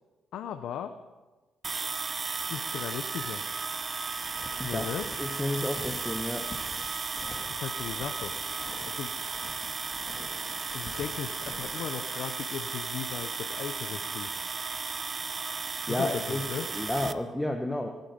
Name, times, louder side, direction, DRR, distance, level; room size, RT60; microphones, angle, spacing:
voice 1, 0.3-0.9 2.5-3.4 4.6-5.1 7.5-8.3 8.9-9.1 10.7-14.3 15.9-16.7, left 9 dB, 75° left, 8 dB, 0.7 m, -37 dB
sound 1, 1.6-17.1, right 4 dB, 35° right, 0.8 m, -35 dB
sound 2, 4.1-11.8, left 2 dB, 30° left, 2.3 m, -47 dB
voice 2, 5.2-6.5 15.9-17.9, left 1 dB, 10° left, 4 dB, 1.1 m, -31 dB
24.0 x 9.3 x 5.3 m, 1.2 s
cardioid pair, 90°, 0 cm